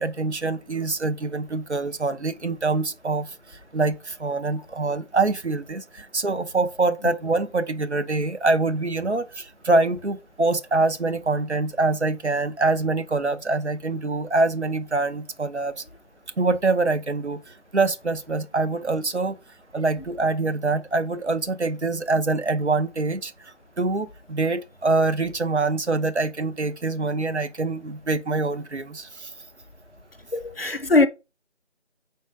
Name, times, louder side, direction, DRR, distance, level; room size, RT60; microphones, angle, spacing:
voice 1, 0.0-15.8 16.4-19.4 19.7-29.3, right 3 dB, 65° right, 0.8 m, -25 dB
voice 2, 30.3-31.1, left 2 dB, 55° left, 0.5 m, -20 dB
4.7 x 4.0 x 5.2 m
figure-of-eight pair, 175°, 36 cm